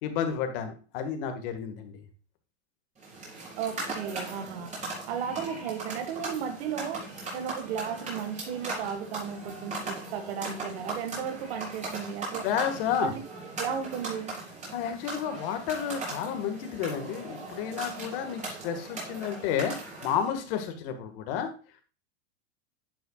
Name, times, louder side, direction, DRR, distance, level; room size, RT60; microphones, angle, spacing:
voice 1, 0.0-2.0 12.4-13.1 14.7-19.7 20.0-21.5, left 8 dB, 55° left, 7 dB, 1.7 m, -31 dB
sound 1, 3.0-20.3, right 2 dB, 20° right, 4.1 m, -39 dB
voice 2, 3.6-4.7 5.1-7.0 7.3-12.5 13.0-13.1 13.6-14.4, right 7 dB, 70° right, 7 dB, 1.8 m, -34 dB
10.5 x 6.8 x 2.4 m, 0.36 s
supercardioid pair, 135°, 33 cm